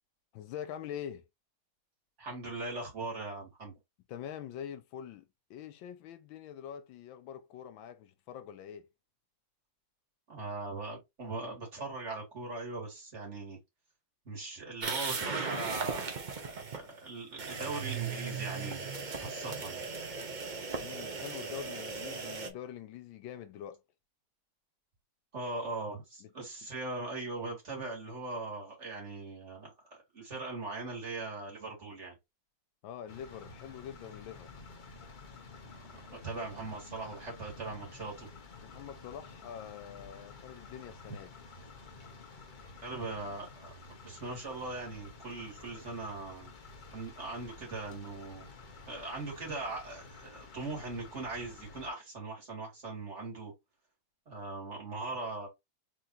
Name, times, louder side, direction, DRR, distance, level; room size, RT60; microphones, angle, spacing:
voice 1, 0.3-1.2 4.1-8.9 20.8-23.8 26.2-26.3 32.8-34.5 38.6-41.3, left 9 dB, 80° left, 1.4 m, -44 dB
voice 2, 2.2-3.7 10.3-13.6 14.3-16.1 16.4-18.9 19.2-19.9 25.3-32.1 35.7-35.8 36.1-38.3 42.8-43.7 44.0-46.5 46.9-48.5 48.9-53.5 54.3-55.5, right 3 dB, 35° right, 2.4 m, -40 dB
sound 1, 14.8-16.8 17.4-22.5, right 5 dB, 85° right, 0.4 m, -37 dB
sound 2, 33.1-51.9, left 3 dB, 50° left, 0.6 m, -51 dB
4.7 x 3.8 x 2.7 m
omnidirectional pair, 2.2 m